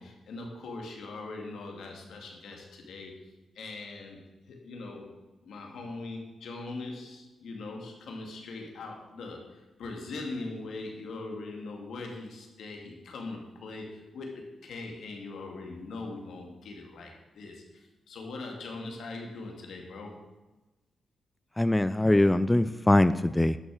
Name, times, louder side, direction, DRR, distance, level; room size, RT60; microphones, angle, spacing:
voice 1, 0.0-3.2 3.6-5.1 5.4-20.2, left 3 dB, 85° left, 1 dB, 2.4 m, -41 dB
voice 2, 21.6-23.6, left 1 dB, 10° left, 13 dB, 0.3 m, -22 dB
11.0 x 6.4 x 6.4 m, 1.1 s
cardioid pair, 110°, 0 cm